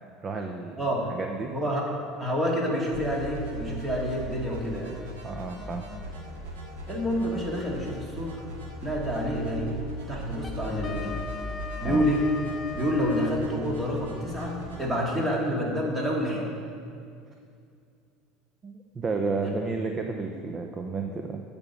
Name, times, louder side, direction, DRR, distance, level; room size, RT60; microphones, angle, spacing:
voice 1, 0.2-0.8 1.1-1.5 5.2-5.9 11.8-12.0 18.6-21.4, right 4 dB, 30° right, 4 dB, 0.7 m, -32 dB
voice 2, 0.8-1.1 1.5-1.9 2.2-4.9 6.9-8.4 8.8-9.8 10.1-11.2 11.8-12.3 12.7-16.5 19.4-19.6, equal, 15° right, -3 dB, 2.5 m, -28 dB
sound 1, 2.9-14.9, equal, 90° right, 2.4 m, -39 dB
Wind instrument woodwind instrument, 10.4-13.5, left 4 dB, 30° left, 0.5 m, -39 dB
9.0 x 5.2 x 7.1 m, 2.4 s
supercardioid pair, 105°, 0 cm